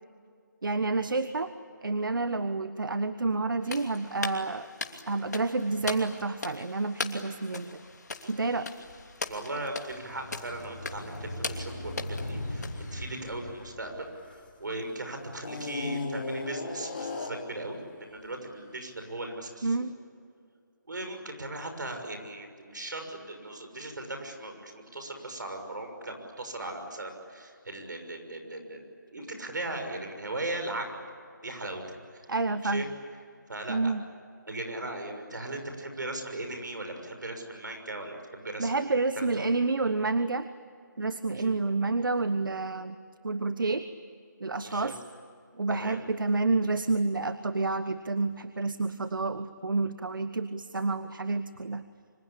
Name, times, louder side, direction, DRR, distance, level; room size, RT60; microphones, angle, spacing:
voice 1, 0.6-1.5 1.8-4.7 5.1-7.8 8.3-8.7 19.6-19.9 32.3-32.9 33.7-34.0 38.6-40.5 41.0-43.0 43.2-43.9 44.4-45.0 45.5-51.8, right 3 dB, 85° right, 12 dB, 1.2 m, -29 dB
sound 1, 3.6-13.4, left 3 dB, 55° left, 2.8 m, -40 dB
voice 2, 9.2-19.7 20.9-31.0 31.4-32.3 32.6-32.9 33.5-33.8 34.5-38.7 39.4-39.5 41.4-41.5 44.6-44.9 45.8-46.0, right 2 dB, 70° right, 5 dB, 6.4 m, -38 dB
sound 2, 9.9-14.8 15.4-17.6, left 2 dB, 30° left, 3.6 m, -37 dB
26.0 x 26.0 x 8.6 m, 2.4 s
hypercardioid pair, 180°, 11 cm